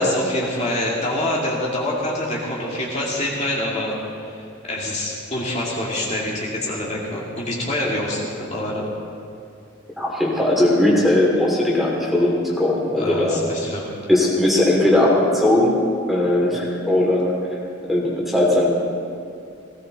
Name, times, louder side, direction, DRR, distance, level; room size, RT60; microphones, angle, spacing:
voice 1, 0.0-8.9 13.0-13.9, left 1 dB, 35° left, -4 dB, 2.2 m, -26 dB
voice 2, 10.0-13.4 14.1-15.8 16.1-17.4 17.9-18.7, left 1 dB, ahead, -3 dB, 2.7 m, -18 dB
18.5 x 16.5 x 4.0 m, 2.4 s
head